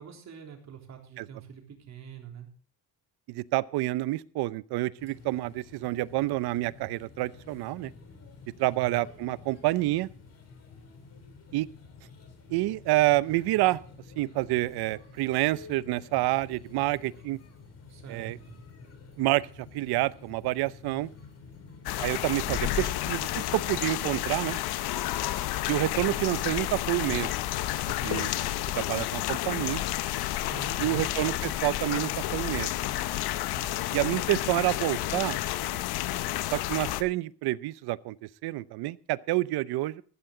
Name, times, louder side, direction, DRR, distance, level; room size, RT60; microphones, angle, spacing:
voice 1, 0.0-2.5 8.7-9.0 17.9-18.6 30.3-31.0 33.4-33.8, right 8 dB, 45° right, 2 dB, 3.6 m, -45 dB
voice 2, 3.3-7.9 8.6-10.1 11.5-11.7 12.5-13.8 14.2-17.4 18.1-18.4 19.2-21.1 22.0-24.6 25.7-27.3 28.0-28.3 28.7-29.8 30.8-33.0 33.9-35.4 36.5-38.2 38.4-40.0, right 18 dB, 85° right, 19 dB, 0.7 m, -28 dB
sound 1, 5.0-24.1, left 4 dB, 40° left, 3.2 m, -50 dB
sound 2, 21.9-37.0, left 14 dB, 85° left, 0.9 m, -31 dB
14.0 x 13.5 x 3.8 m, 0.42 s
cardioid pair, 165°, 38 cm